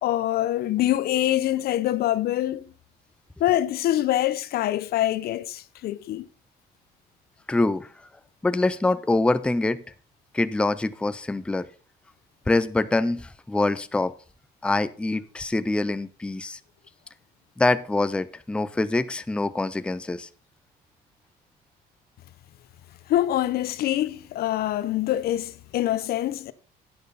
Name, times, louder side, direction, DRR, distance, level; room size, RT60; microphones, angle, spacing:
voice 1, 0.0-2.6 3.4-6.3 23.1-26.5, left 13 dB, 65° left, 0.6 m, -25 dB
voice 2, 7.5-7.9 8.4-9.8 10.3-11.7 12.5-14.1 14.6-16.6 17.6-20.3, left 2 dB, 5° left, 0.5 m, -24 dB
10.5 x 8.8 x 4.0 m
cardioid pair, 110°, 17 cm